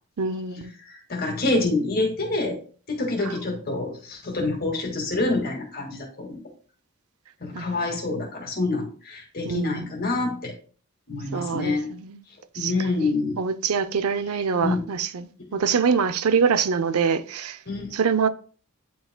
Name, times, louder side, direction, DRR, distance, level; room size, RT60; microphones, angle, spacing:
voice 1, 0.2-0.7 7.5-7.7 9.4-9.9 11.3-12.2 12.5-13.1 13.4-17.6 17.9-18.3, right 6 dB, 80° right, 0.5 m, -25 dB
voice 2, 0.9-2.6 2.9-6.4 7.4-10.5 11.1-11.9 12.6-13.4 14.6-14.8 17.7-17.9, left 2 dB, 40° left, 1.9 m, -27 dB
9.9 x 4.7 x 2.2 m
head